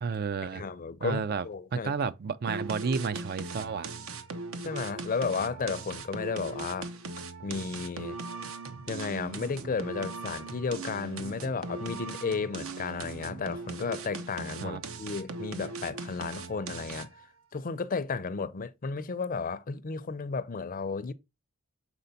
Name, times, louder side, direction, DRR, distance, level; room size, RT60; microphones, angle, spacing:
voice 1, 0.0-0.6 1.0-1.4 1.7-3.9 14.6-14.8, right 5 dB, 50° right, 0.4 m, -31 dB
voice 2, 0.5-1.9 4.6-6.9 7.4-8.2 8.9-17.1 17.5-21.1, left 4 dB, 40° left, 0.5 m, -33 dB
sound 1, 2.5-17.3, right 3 dB, 70° right, 0.8 m, -39 dB
6.9 x 4.1 x 4.1 m
head